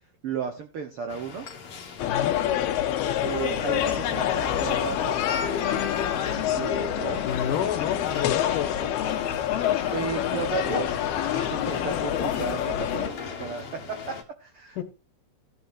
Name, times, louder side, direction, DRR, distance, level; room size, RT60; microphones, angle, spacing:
voice 1, 0.2-1.5 3.2-5.3 6.1-7.2 9.9-11.0 11.3-13.1 13.4-14.0 14.4-14.8, right 6 dB, 80° right, 6 dB, 1.2 m, -34 dB
sound 1, 1.1-14.2, left 5 dB, 50° left, 2.0 m, -39 dB
sound 2, 2.0-13.1, left 10 dB, 90° left, 3.1 m, -27 dB
voice 2, 2.0-2.4 7.2-8.8 14.8-14.9, left 9 dB, 65° left, 8 dB, 2.6 m, -30 dB
15.0 x 9.3 x 2.7 m, 0.29 s
omnidirectional pair, 4.4 m